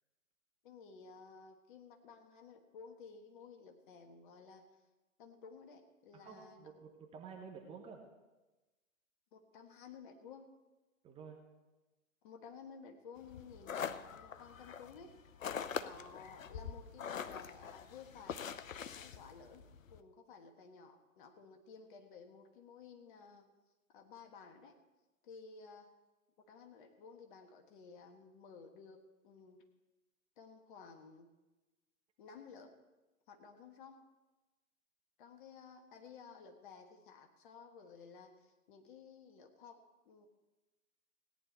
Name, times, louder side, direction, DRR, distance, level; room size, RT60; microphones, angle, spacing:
voice 1, 0.6-4.7 5.2-6.7 9.3-10.5 12.2-15.2 15.7-18.4 18.9-23.5 23.9-24.8 25.2-25.9 26.5-29.6 30.4-31.3 32.2-32.7 33.3-34.0 35.2-40.3, left 5 dB, 35° left, 5 dB, 1.5 m, -55 dB
voice 2, 6.1-8.0 11.0-11.4, right 6 dB, 15° right, 2 dB, 1.1 m, -51 dB
sound 1, 13.2-20.0, left 7 dB, 70° left, 0.8 m, -44 dB
17.0 x 10.0 x 4.4 m, 1.1 s
figure-of-eight pair, 125°, 42 cm